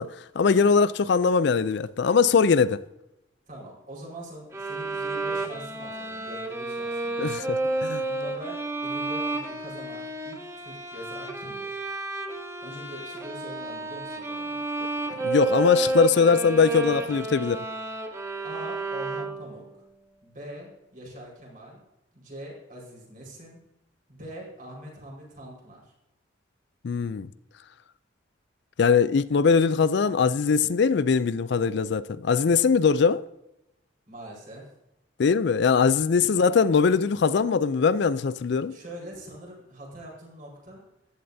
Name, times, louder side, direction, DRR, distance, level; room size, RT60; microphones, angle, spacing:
voice 1, 0.0-2.8 7.2-8.0 15.2-17.6 26.8-27.3 28.8-33.3 35.2-38.8, left 5 dB, 60° left, 0.4 m, -21 dB
voice 2, 3.5-7.2 7.7-7.8 8.1-11.8 12.6-14.6 16.3-16.5 16.9-17.3 18.4-19.6 20.2-21.8 22.1-23.6 24.1-25.9 34.1-34.7 36.3-36.4 38.7-40.8, right 1 dB, 45° right, 4.8 m, -43 dB
sound 1, 4.5-19.6, right 2 dB, 15° right, 1.0 m, -31 dB
14.5 x 11.0 x 2.7 m
head